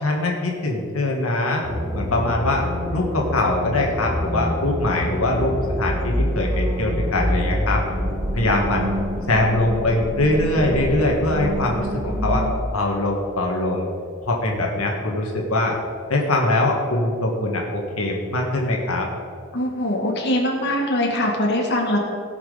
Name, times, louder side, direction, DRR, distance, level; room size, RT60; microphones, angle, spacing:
voice 1, 0.0-1.6 1.9-7.8 8.3-8.9 9.3-12.5 12.7-13.9 14.2-15.8 16.1-19.1, left 2 dB, 85° left, 0 dB, 1.7 m, -22 dB
sound 1, 1.6-12.5, equal, 10° right, 3.3 m, -26 dB
voice 2, 19.5-22.0, left 1 dB, 55° left, -1 dB, 1.9 m, -22 dB
17.5 x 6.1 x 5.1 m, 2.3 s
head